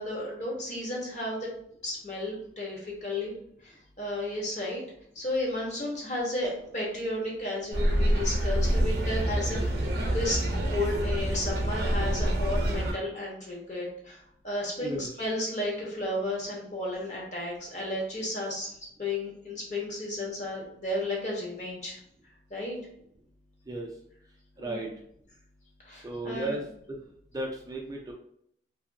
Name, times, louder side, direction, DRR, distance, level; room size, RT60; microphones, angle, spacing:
voice 1, 0.0-1.5 1.8-3.4 3.6-4.8 5.1-18.7 19.0-22.0 22.5-22.8 24.6-24.8 25.8-26.6, left 1 dB, 40° left, -3 dB, 0.9 m, -33 dB
sound 1, 7.7-12.9, right 1 dB, 60° right, 0.6 m, -27 dB
voice 2, 24.6-24.9 26.0-27.0 27.3-28.1, right 1 dB, 20° right, 0 dB, 0.3 m, -35 dB
2.6 x 2.6 x 2.5 m, 0.70 s
head